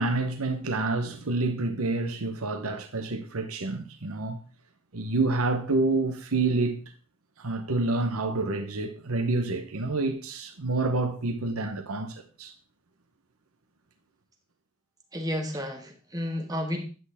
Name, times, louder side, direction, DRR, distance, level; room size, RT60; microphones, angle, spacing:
voice 1, 0.0-4.4 4.9-6.8 7.4-12.5, right 3 dB, 80° right, 1.1 m, -28 dB
voice 2, 15.1-16.8, left 1 dB, 15° right, 1.8 m, -31 dB
10.5 x 8.5 x 3.6 m
head